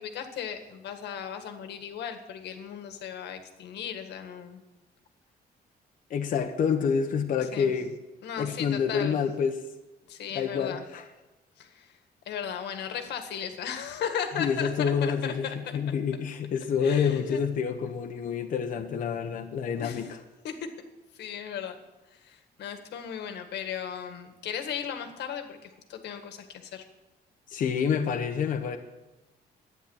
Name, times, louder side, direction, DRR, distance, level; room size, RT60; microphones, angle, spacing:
voice 1, 0.0-4.6 7.5-7.7 8.2-9.2 10.1-10.8 11.6-11.9 12.2-15.6 16.8-17.4 19.8-20.1 20.4-20.5 21.1-21.7 22.1-26.8, left 8 dB, 85° left, 7 dB, 1.8 m, -36 dB
voice 2, 6.1-7.9 8.4-9.6 10.3-11.1 14.3-20.2 27.5-28.8, left 6 dB, 50° left, 5 dB, 1.0 m, -28 dB
12.5 x 9.5 x 7.2 m, 1.1 s
cardioid pair, 175°, 17 cm